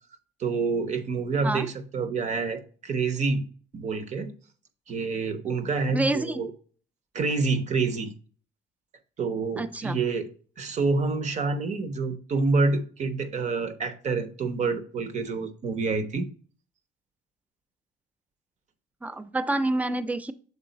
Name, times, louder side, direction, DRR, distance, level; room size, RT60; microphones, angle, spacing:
voice 1, 0.4-3.4 3.7-4.3 4.9-6.5 7.1-8.1 9.2-10.3 10.6-16.3, right 4 dB, 45° right, 0.9 m, -27 dB
voice 2, 5.9-6.4 9.6-10.0 19.0-20.3, right 2 dB, 10° right, 0.5 m, -27 dB
7.0 x 3.6 x 4.0 m
cardioid pair, 110°, 17 cm